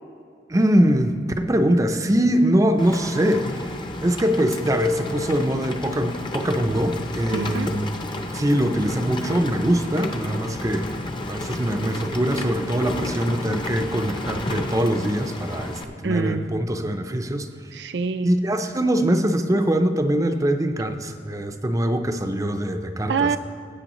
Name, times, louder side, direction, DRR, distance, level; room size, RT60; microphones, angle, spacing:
voice 1, 0.5-7.9 8.3-10.9 11.3-17.5 18.2-23.3, right 1 dB, 20° right, 7 dB, 0.5 m, -23 dB
Rain, 2.8-15.8, left 1 dB, 25° left, 0.7 m, -32 dB
voice 2, 7.3-7.7 16.0-16.5 17.7-18.3 23.1-23.4, right 5 dB, 70° right, 10 dB, 0.5 m, -25 dB
16.5 x 8.4 x 3.0 m, 2.3 s
head